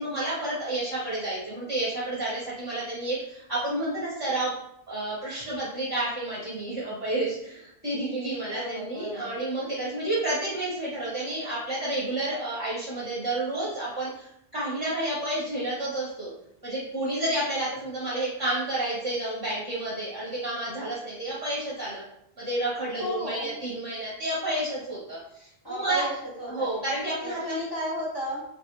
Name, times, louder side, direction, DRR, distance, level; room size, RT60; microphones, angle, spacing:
voice 1, 0.0-4.5 4.9-16.3 16.6-22.0 22.4-26.0 26.5-27.6, right 1 dB, 25° right, -7 dB, 0.6 m, -30 dB
voice 2, 8.5-9.3 23.0-23.6 25.6-26.8 27.2-28.4, equal, 30° left, -5 dB, 0.5 m, -34 dB
2.4 x 2.3 x 2.9 m, 0.77 s
omnidirectional pair, 1.1 m